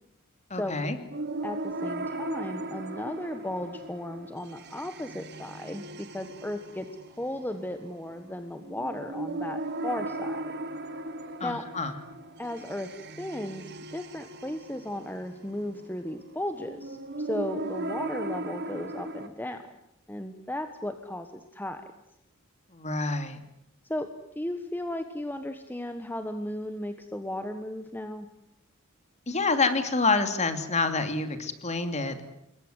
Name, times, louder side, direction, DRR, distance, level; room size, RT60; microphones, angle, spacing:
voice 1, 0.5-1.0 11.4-11.9 22.7-23.4 29.3-32.2, left 3 dB, 35° left, 8 dB, 2.9 m, -27 dB
sound 1, 1.1-19.3, right 2 dB, 50° right, 2.0 m, -38 dB
voice 2, 1.4-6.9 7.2-10.5 11.4-11.6 12.4-13.6 13.9-19.7 20.1-21.8 23.9-28.3, left 1 dB, 10° left, 8 dB, 1.4 m, -35 dB
27.5 x 22.0 x 8.1 m, 0.82 s
head